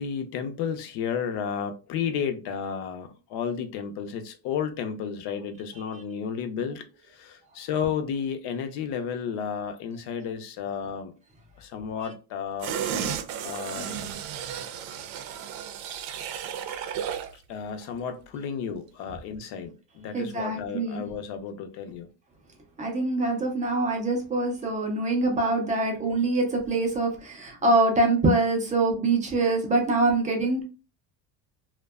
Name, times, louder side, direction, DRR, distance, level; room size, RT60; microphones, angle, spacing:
voice 1, 0.0-11.1 11.6-13.1 13.4-14.2 17.3-22.1, left 7 dB, 60° left, 0.6 m, -32 dB
sound 1, 12.6-17.4 17.7-17.8, right 8 dB, 85° right, 0.6 m, -33 dB
voice 2, 20.1-21.0 22.8-30.6, right 2 dB, 20° right, 0.3 m, -24 dB
2.6 x 2.2 x 2.3 m
cardioid pair, 150°, 44 cm